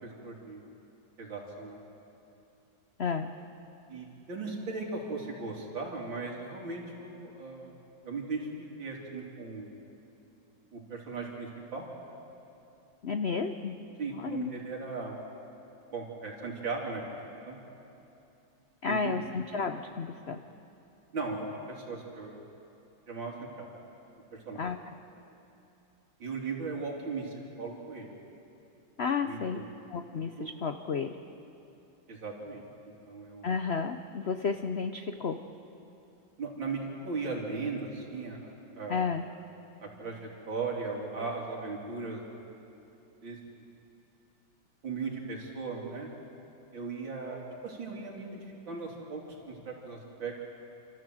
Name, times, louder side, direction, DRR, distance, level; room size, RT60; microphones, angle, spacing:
voice 1, 0.0-0.6 1.2-1.8 3.9-7.8 8.0-8.5 8.8-9.7 10.7-11.9 14.0-15.2 15.9-17.1 17.5-17.6 18.9-19.1 21.1-22.4 23.1-23.7 24.3-24.6 26.2-28.1 29.2-29.7 30.1-30.5 32.1-32.6 33.1-33.5 36.4-38.5 38.8-39.1 39.8-42.2 43.2-43.6 44.8-46.1 46.7-50.5, right 4 dB, 80° right, -1 dB, 3.8 m, -37 dB
voice 2, 3.0-3.3 13.0-13.8 14.1-14.5 18.8-20.4 24.6-24.8 29.0-29.6 29.9-31.2 33.4-35.4 38.9-39.2, left 5 dB, 80° left, 7 dB, 0.5 m, -32 dB
29.0 x 13.5 x 7.7 m, 2.8 s
omnidirectional pair, 2.1 m